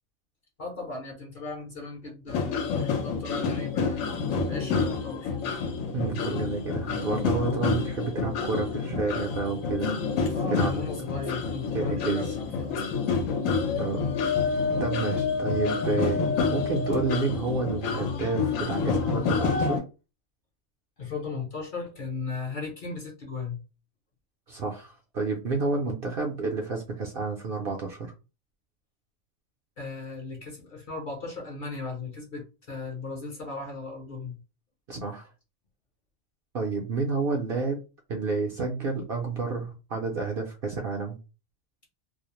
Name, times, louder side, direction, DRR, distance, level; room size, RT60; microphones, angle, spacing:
voice 1, 0.6-4.1 4.5-5.4 10.2-13.0 21.0-23.6 29.8-34.4, left 3 dB, 50° left, 0.7 m, -37 dB
sound 1, 2.3-19.8, left 5 dB, 90° left, 1.0 m, -28 dB
voice 2, 5.9-10.0 10.5-10.7 11.7-12.3 13.7-14.1 14.4-19.8 24.5-28.1 34.9-35.3 36.5-37.8 38.1-41.2, right 4 dB, 60° right, 0.6 m, -30 dB
2.5 x 2.0 x 2.8 m
omnidirectional pair, 1.3 m